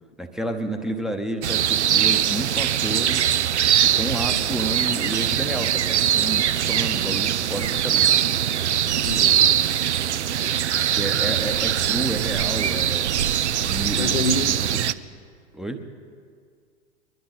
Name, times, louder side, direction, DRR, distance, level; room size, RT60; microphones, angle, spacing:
voice 1, 0.2-3.3 3.8-8.2 10.9-13.1 13.7-14.8 15.5-15.8, right 1 dB, ahead, 0.8 m, -31 dB
sound 1, 1.4-14.9, right 10 dB, 75° right, 0.6 m, -22 dB
voice 2, 8.9-9.4 14.0-14.5, left 2 dB, 85° left, 0.8 m, -27 dB
22.5 x 12.0 x 4.0 m
figure-of-eight pair, 95°, 35 cm